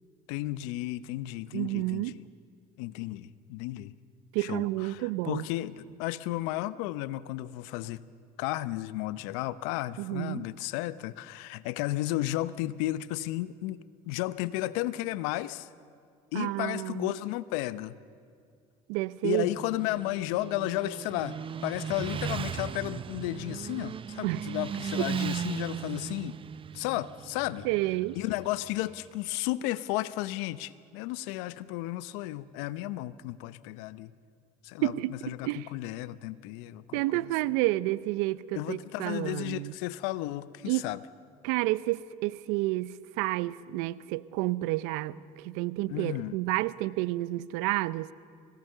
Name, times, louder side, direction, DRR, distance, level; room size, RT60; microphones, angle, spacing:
voice 1, 0.3-2.3 2.8-3.9 4.4-8.0 8.4-13.8 14.1-15.7 16.3-18.0 19.2-26.4 26.7-27.7 28.1-34.1 34.6-37.3 38.5-41.0 45.9-46.4, left 16 dB, 75° left, 16 dB, 0.8 m, -33 dB
voice 2, 1.5-2.1 4.3-5.4 10.0-10.4 16.3-17.1 18.9-19.5 24.2-24.4 27.6-28.2 34.8-35.1 35.4-35.7 36.9-39.7 40.7-40.8 41.4-48.1, right 19 dB, 75° right, 18 dB, 0.6 m, -30 dB
Motorcycle, 19.3-29.1, right 8 dB, 30° right, 0.5 m, -37 dB
25.5 x 18.5 x 6.7 m, 2.3 s
hypercardioid pair, 75°, 17 cm